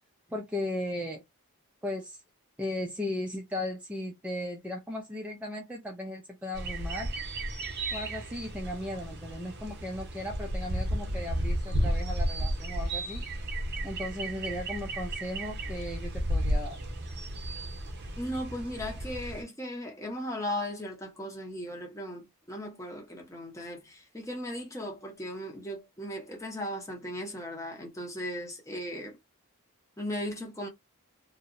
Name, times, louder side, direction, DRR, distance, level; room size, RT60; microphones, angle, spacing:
voice 1, 0.3-1.2 1.8-2.2 2.6-7.1 7.9-13.2 13.8-16.8, left 1 dB, 5° right, 0.4 m, -36 dB
sound 1, 6.5-19.4, right 1 dB, 50° right, 0.7 m, -33 dB
voice 2, 18.2-29.2 30.0-30.7, equal, 15° left, 0.8 m, -37 dB
2.7 x 2.0 x 2.5 m
head